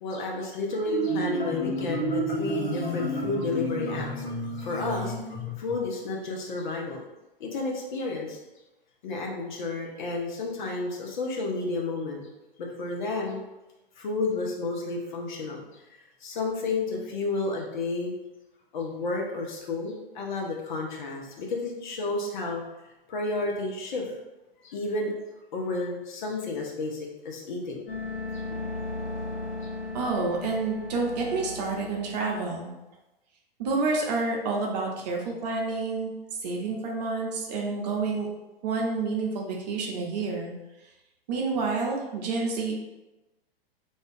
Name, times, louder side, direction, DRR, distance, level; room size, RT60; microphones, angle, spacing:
voice 1, 0.0-4.2 4.6-5.1 5.6-7.0 7.4-8.4 9.0-12.3 12.6-13.4 14.0-15.8 16.2-18.1 18.7-22.6 23.1-24.2 24.6-25.1 25.5-27.8 28.3-28.4 29.6-29.7, left 3 dB, 50° left, 0 dB, 0.7 m, -31 dB
Marimba xylophone, 0.7-5.8, right 1 dB, 25° left, 1.0 m, -31 dB
sound 1, 27.9-32.5, left 3 dB, 75° left, 1.0 m, -36 dB
voice 2, 29.9-32.7 33.6-36.1 36.4-38.3 38.6-40.5 41.3-42.7, right 3 dB, 45° right, 0 dB, 0.7 m, -29 dB
2.6 x 2.3 x 3.4 m, 1.0 s
figure-of-eight pair, 100°, 30 cm